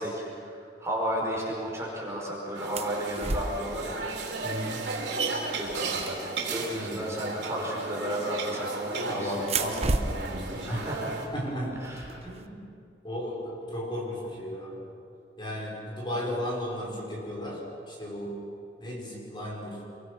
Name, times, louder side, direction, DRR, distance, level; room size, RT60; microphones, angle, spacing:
voice 1, 0.0-4.0 5.5-6.2 6.5-9.3 10.6-11.2 11.8-12.1, equal, 15° right, -3 dB, 5.0 m, -33 dB
sound 1, 2.6-11.3, right 3 dB, 80° right, 3.6 m, -34 dB
sound 2, 2.7-3.8 4.9-5.0 5.3-6.8 8.3-8.8 9.4-12.4, right 3 dB, 35° right, 0.9 m, -33 dB
voice 2, 4.4-4.9 6.7-7.0 9.0-10.9 11.3-11.8 12.2-12.6 13.0-14.8 15.4-18.4 18.8-19.8, equal, 25° left, -3 dB, 4.8 m, -35 dB
26.0 x 23.0 x 6.0 m, 2.5 s
head